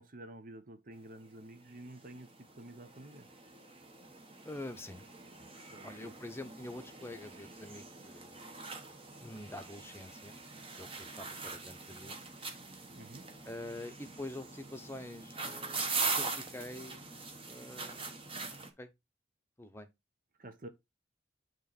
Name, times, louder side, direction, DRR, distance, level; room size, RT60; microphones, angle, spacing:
voice 1, 0.0-3.3 5.7-6.1 13.0-13.2 20.4-20.7, right 1 dB, 45° right, 0.8 m, -50 dB
sound 1, 1.2-1.3 1.6-18.7, right 4 dB, 30° right, 1.1 m, -42 dB
voice 2, 4.4-5.0 5.4-5.5 5.8-8.5 9.2-10.4 10.8-12.2 13.5-17.1 17.4-18.2 18.8-18.9 19.6-19.9, left 1 dB, 10° left, 0.8 m, -46 dB
9.1 x 3.1 x 4.2 m
head